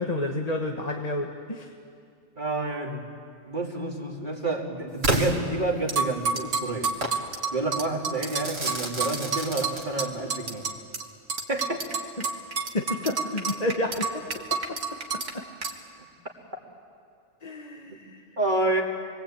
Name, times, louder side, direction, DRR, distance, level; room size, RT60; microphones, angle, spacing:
voice 1, 0.0-1.7 12.2-12.3 12.7-14.2 14.5-14.6 17.4-18.2, left 1 dB, 35° left, 1 dB, 1.5 m, -30 dB
voice 2, 2.4-3.0 3.5-6.9 7.5-10.7 11.5-11.9 17.9-18.0 18.4-18.8, right 2 dB, 40° right, -1 dB, 2.7 m, -29 dB
Crackle / Fireworks, 5.0-6.2 7.0-7.2 8.2-10.2, right 1 dB, 55° right, 2.5 m, -30 dB
sound 1, 5.9-11.0 11.3-15.3 15.6-15.7, right 5 dB, 75° right, 2.1 m, -29 dB
27.5 x 21.5 x 8.7 m, 2.3 s
omnidirectional pair, 1.3 m